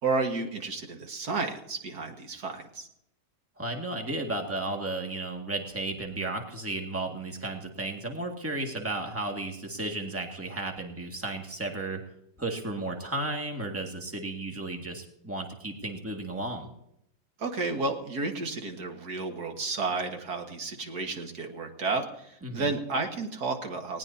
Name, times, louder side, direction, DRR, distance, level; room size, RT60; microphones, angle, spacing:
voice 1, 0.0-2.9 17.4-24.0, right 3 dB, 70° right, 4 dB, 2.2 m, -32 dB
voice 2, 3.6-12.0 12.4-16.7 22.4-22.7, right 2 dB, 10° right, 2 dB, 1.9 m, -34 dB
19.5 x 18.5 x 2.8 m, 0.78 s
omnidirectional pair, 1.7 m